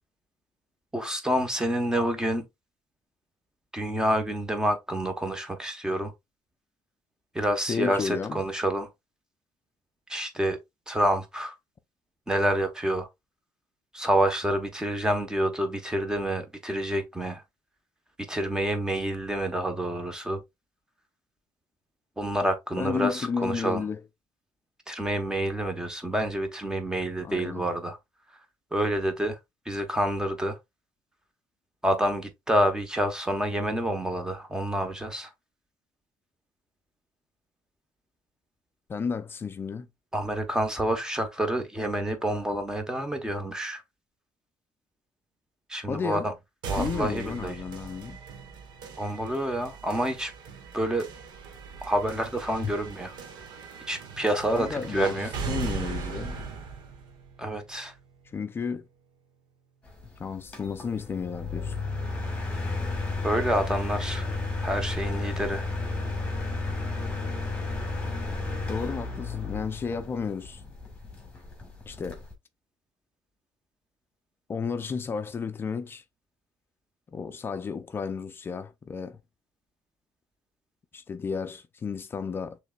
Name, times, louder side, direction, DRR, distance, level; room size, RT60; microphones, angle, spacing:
voice 1, 0.9-2.5 3.7-6.1 7.3-8.9 10.1-10.6 10.9-11.5 12.3-13.1 13.9-17.4 18.3-20.4 22.2-23.8 24.9-28.0 28.7-29.4 29.7-30.6 31.8-35.3 40.1-43.8 45.7-46.3 46.7-47.5 49.0-50.3 50.7-51.1 51.8-53.1 53.9-55.3 57.4-57.9 63.2-64.3 64.6-65.7, right 1 dB, 10° right, 1.1 m, -28 dB
voice 2, 7.7-8.4 22.8-24.0 27.2-27.7 38.9-39.9 45.9-46.3 46.7-48.2 52.6-52.7 54.5-55.2 55.5-56.4 58.3-58.9 60.2-61.8 68.7-70.6 71.8-72.2 74.5-76.0 77.1-79.2 80.9-82.6, left 5 dB, 30° left, 0.5 m, -32 dB
sound 1, 46.6-58.6, right 5 dB, 70° right, 1.2 m, -39 dB
sound 2, 59.9-72.3, left 3 dB, 15° left, 1.7 m, -32 dB
6.4 x 3.3 x 2.3 m
cardioid pair, 130°, 8 cm